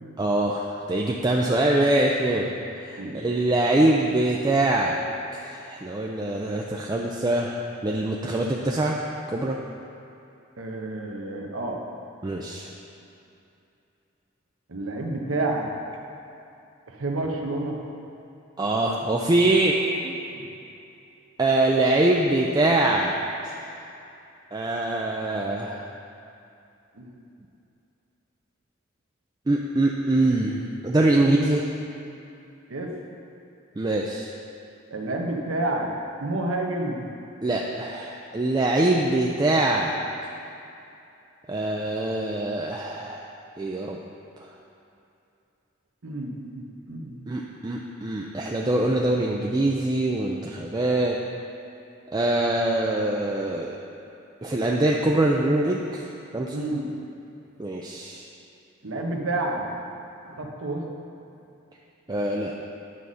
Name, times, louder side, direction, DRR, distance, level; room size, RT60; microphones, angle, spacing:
voice 1, 0.2-2.5 2.8-5.0 5.3-9.0 9.3-9.6 12.2-12.7 18.6-19.8 20.0-20.2 21.4-23.1 23.4-23.6 24.5-25.9 29.5-31.6 33.8-34.3 37.4-40.0 41.5-43.2 43.6-44.0 47.3-51.2 52.1-53.8 54.4-56.1 56.3-56.6 57.6-58.2 62.1-62.7, right 2 dB, 20° right, -1 dB, 0.4 m, -23 dB
voice 2, 10.6-11.8 14.7-15.7 16.9-17.8 20.4-20.5 27.0-27.2 32.7-32.9 34.9-35.9 36.2-37.1 46.0-47.2 56.5-56.9 58.8-59.6 60.2-60.8, right 2 dB, 75° right, 1 dB, 1.0 m, -29 dB
9.2 x 4.1 x 6.3 m, 2.7 s
head